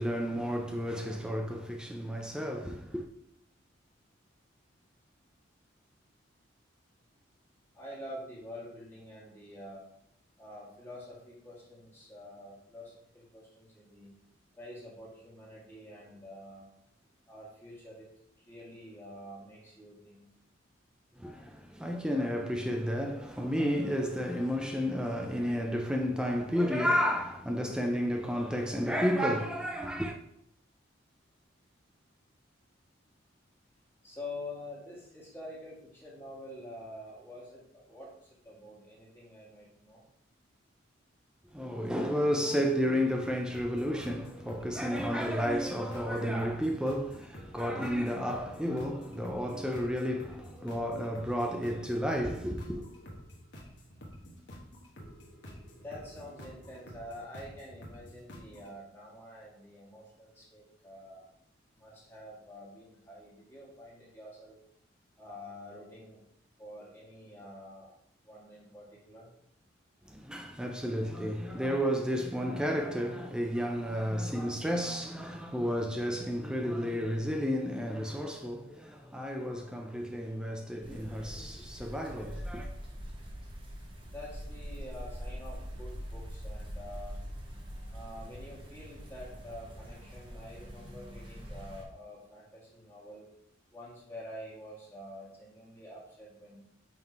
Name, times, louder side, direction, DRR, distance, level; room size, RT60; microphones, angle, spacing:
voice 1, 0.0-3.0 21.2-30.1 41.5-52.8 70.1-82.7, equal, 5° right, 0.4 m, -32 dB
voice 2, 7.7-9.8 10.4-14.1 14.5-16.7 17.3-18.1 18.5-20.2 34.0-37.6 37.9-38.1 38.4-40.0 55.8-61.3 61.8-64.6 65.2-66.2 66.6-67.9 68.3-69.3 84.0-87.2 87.9-93.3 93.7-96.6, left 1 dB, 10° left, 1.8 m, -47 dB
sound 1, 43.5-58.7, equal, 60° left, 1.2 m, -49 dB
sound 2, 80.8-91.8, equal, 25° right, 1.1 m, -43 dB
5.7 x 3.6 x 4.6 m
head